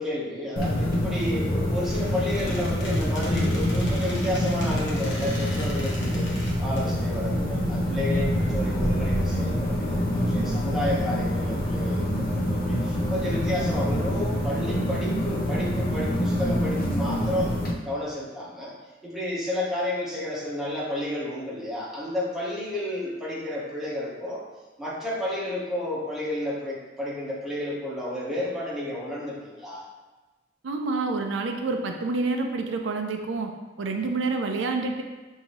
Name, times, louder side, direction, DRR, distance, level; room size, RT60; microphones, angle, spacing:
voice 1, 0.0-17.5 17.8-18.7 19.0-24.4 24.8-29.8, left 1 dB, ahead, -7 dB, 1.0 m, -31 dB
sound 1, 0.6-17.7, equal, 50° left, 0.6 m, -26 dB
Squeak, 1.8-6.9, left 1 dB, 70° left, 1.0 m, -40 dB
voice 2, 30.6-33.5 33.8-35.0, right 3 dB, 80° right, 4 dB, 0.4 m, -28 dB
5.9 x 2.7 x 3.0 m, 1.2 s
head